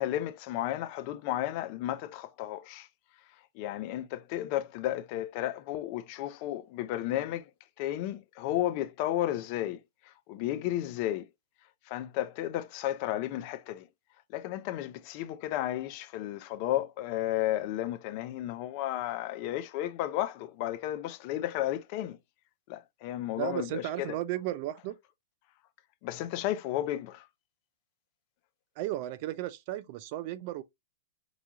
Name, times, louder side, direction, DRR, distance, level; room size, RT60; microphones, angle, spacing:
voice 1, 0.0-2.9 3.5-7.5 7.8-11.3 11.9-13.9 14.3-22.2 22.7-24.2 26.0-27.3, left 13 dB, 45° left, 0.5 m, -33 dB
voice 2, 23.4-24.9 28.8-30.6, right 14 dB, 45° right, 0.5 m, -34 dB
4.9 x 2.4 x 2.8 m
hypercardioid pair, 125°, 0 cm